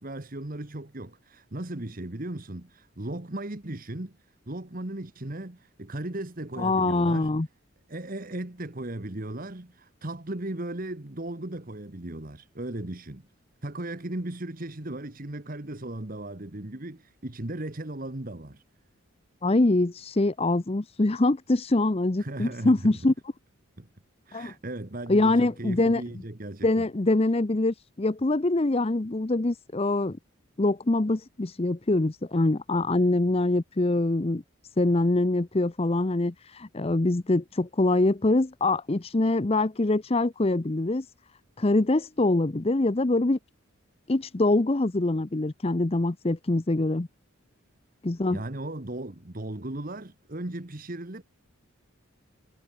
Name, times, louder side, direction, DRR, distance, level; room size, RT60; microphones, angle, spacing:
voice 1, 0.0-4.2 4.5-7.3 7.9-13.3 13.6-18.6 22.2-23.0 23.8-23.9 24.3-26.9 48.3-51.2, right 1 dB, 40° right, 1.5 m, -36 dB
voice 2, 6.6-7.5 19.4-23.1 24.3-24.5 25.1-26.0 26.6-30.2 30.6-34.4 34.8-41.1 41.6-43.4 44.1-47.1 48.0-48.4, left 2 dB, 30° left, 0.6 m, -24 dB
head